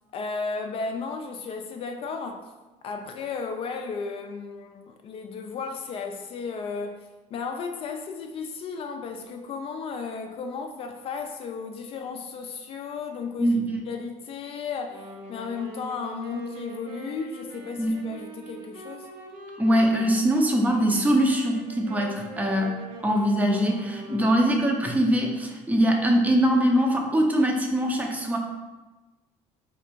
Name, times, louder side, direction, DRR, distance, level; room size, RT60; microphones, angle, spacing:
voice 1, 0.1-2.5 2.8-7.0 7.3-13.6 13.9-19.1 24.1-24.3, left 5 dB, 45° left, 4 dB, 0.3 m, -34 dB
voice 2, 13.4-13.7 17.8-18.0 19.6-22.8 23.0-28.4, equal, 10° right, 1 dB, 0.5 m, -22 dB
Wind instrument woodwind instrument, 14.9-24.4, right 2 dB, 90° right, 0.8 m, -43 dB
3.3 x 2.5 x 4.4 m, 1.2 s
cardioid pair, 125°, 14 cm